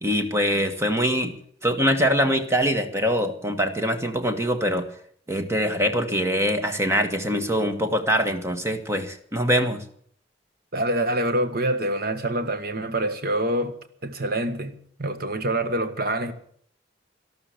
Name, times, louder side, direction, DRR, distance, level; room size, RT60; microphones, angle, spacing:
voice 1, 0.0-1.3 1.6-4.9 5.3-9.8, equal, 15° right, 1.5 m, -23 dB
voice 2, 10.7-13.8 14.0-16.3, right 1 dB, 55° right, 1.6 m, -26 dB
12.5 x 12.5 x 8.4 m
head